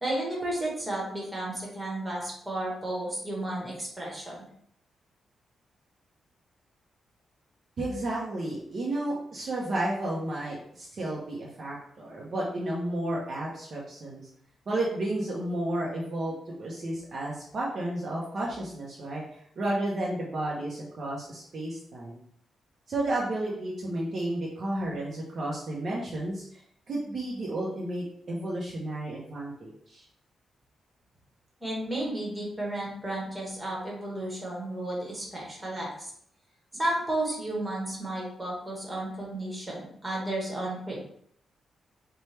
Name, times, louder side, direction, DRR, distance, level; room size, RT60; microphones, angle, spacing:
voice 1, 0.0-4.5 31.6-36.1 36.7-41.0, right 1 dB, 10° right, -3 dB, 1.1 m, -33 dB
voice 2, 7.8-14.3 14.7-16.3 16.6-22.2 22.9-26.6 26.9-30.0, right 1 dB, 40° right, -4 dB, 0.6 m, -32 dB
4.2 x 2.2 x 3.2 m, 0.67 s
wide cardioid pair, 170°, 0 cm